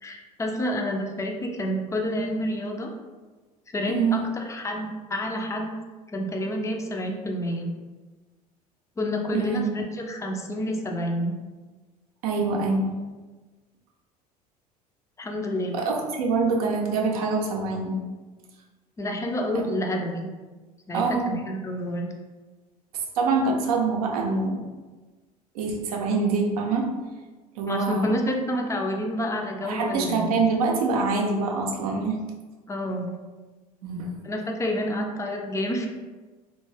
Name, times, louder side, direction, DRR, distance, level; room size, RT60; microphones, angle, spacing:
voice 1, 0.0-2.9 3.7-5.7 6.1-7.7 9.0-11.3 15.2-15.9 19.0-20.3 20.9-22.1 27.6-30.3 32.7-33.2 34.2-35.9, equal, 15° left, 2 dB, 0.4 m, -29 dB
voice 2, 3.9-4.3 9.3-9.6 12.2-13.0 15.7-18.0 19.5-19.6 20.9-21.4 22.9-24.6 25.5-26.9 27.6-28.3 29.6-32.2 33.8-34.1, right 4 dB, 65° right, 0 dB, 0.6 m, -25 dB
2.6 x 2.1 x 3.1 m, 1.3 s
figure-of-eight pair, 65°, 21 cm